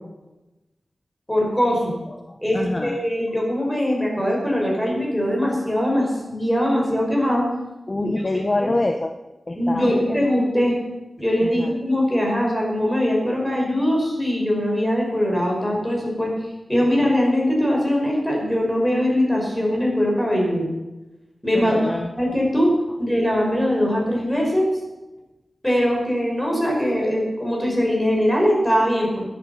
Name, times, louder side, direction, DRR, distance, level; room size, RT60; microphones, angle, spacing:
voice 1, 1.3-1.9 2.4-7.5 8.0-8.1 8.6-8.7 9.5-10.7 11.2-16.3 16.7-20.7 21.4-21.7 22.2-22.7 23.0-24.7 25.6-29.2, equal, 10° left, -1 dB, 5.6 m, -21 dB
voice 2, 2.3-3.0 7.9-9.2 9.5-10.3 11.4-11.7 21.5-22.1, left 2 dB, 30° left, 5 dB, 0.9 m, -26 dB
14.5 x 10.5 x 5.8 m, 1.0 s
wide cardioid pair, 75°, 0 cm